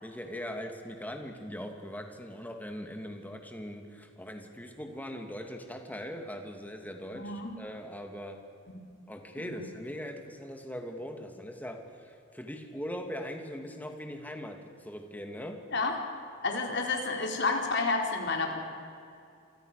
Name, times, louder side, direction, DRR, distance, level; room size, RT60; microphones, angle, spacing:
voice 1, 0.0-8.4 9.1-15.6, equal, 10° left, 4 dB, 2.8 m, -40 dB
voice 2, 7.1-7.5 9.4-9.6 15.7-16.0 16.4-18.6, left 3 dB, 60° left, 2 dB, 4.3 m, -30 dB
28.0 x 25.5 x 6.8 m, 2.5 s
head